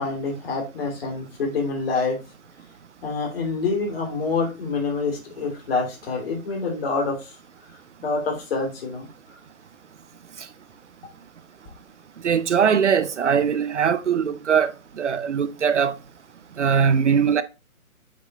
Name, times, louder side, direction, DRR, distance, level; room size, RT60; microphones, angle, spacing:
voice 1, 0.0-2.2 3.0-7.3 8.0-9.1, left 4 dB, 40° left, 3.1 m, -26 dB
voice 2, 12.2-15.9 16.6-17.4, right 7 dB, 55° right, 0.7 m, -21 dB
8.3 x 3.7 x 4.2 m
hypercardioid pair, 160°, 42 cm